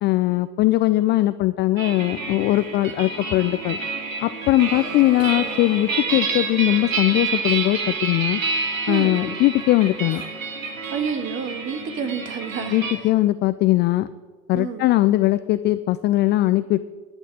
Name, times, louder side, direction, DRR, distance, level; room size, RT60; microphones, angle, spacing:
voice 1, 0.0-3.8 4.2-8.4 8.9-10.2 12.7-14.1 14.5-16.9, left 16 dB, 30° left, 15 dB, 0.4 m, -20 dB
sound 1, 1.8-12.9, right 4 dB, 85° right, 2.0 m, -29 dB
sound 2, 4.5-6.7, left 1 dB, 10° right, 4.3 m, -39 dB
voice 2, 8.9-9.2 10.9-13.1 14.5-14.9, right 6 dB, 30° right, 8 dB, 1.8 m, -29 dB
11.5 x 8.1 x 8.8 m, 1.4 s
figure-of-eight pair, 80°, 39 cm